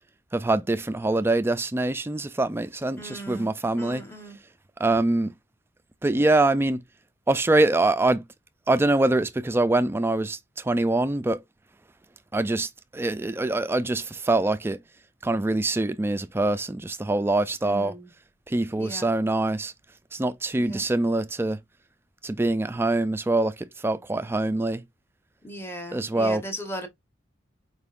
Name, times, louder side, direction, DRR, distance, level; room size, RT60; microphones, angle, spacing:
voice 1, 0.3-4.0 4.8-5.3 6.0-6.8 7.3-8.2 8.7-11.4 12.3-14.8 15.2-17.9 18.5-19.7 20.1-21.6 22.2-24.8 25.9-26.4, right 2 dB, 10° right, 0.3 m, -24 dB
voice 2, 3.0-3.5 3.8-4.4 17.6-18.1 18.8-19.1 20.6-20.8 25.4-26.9, equal, 10° left, 1.0 m, -37 dB
4.6 x 3.5 x 2.4 m
head